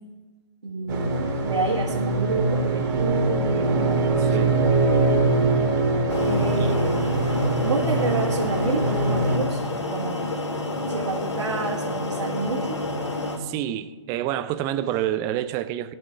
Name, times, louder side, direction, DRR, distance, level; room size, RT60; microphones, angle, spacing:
voice 1, 0.6-4.3 6.3-6.9 7.6-9.6 9.9-10.3 10.9-12.8, right 3 dB, 75° right, 1.7 m, -29 dB
sound 1, 0.9-9.4, right 2 dB, 40° right, 2.3 m, -23 dB
voice 2, 4.2-4.6 13.4-15.9, right 12 dB, 20° right, 0.4 m, -28 dB
sound 2, 6.1-13.4, left 2 dB, 85° left, 1.8 m, -29 dB
11.5 x 5.5 x 8.1 m
figure-of-eight pair, 130°, 15 cm